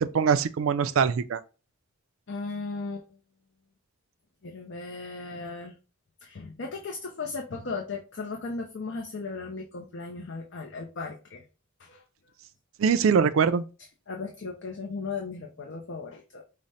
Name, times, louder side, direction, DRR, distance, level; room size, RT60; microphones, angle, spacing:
voice 1, 0.0-1.4 12.8-13.6, right 6 dB, 75° right, 0.4 m, -23 dB
voice 2, 2.3-3.1 4.4-5.7 6.2-11.4 11.8-12.0 14.1-16.4, left 4 dB, 60° left, 0.6 m, -36 dB
5.0 x 2.1 x 4.1 m
head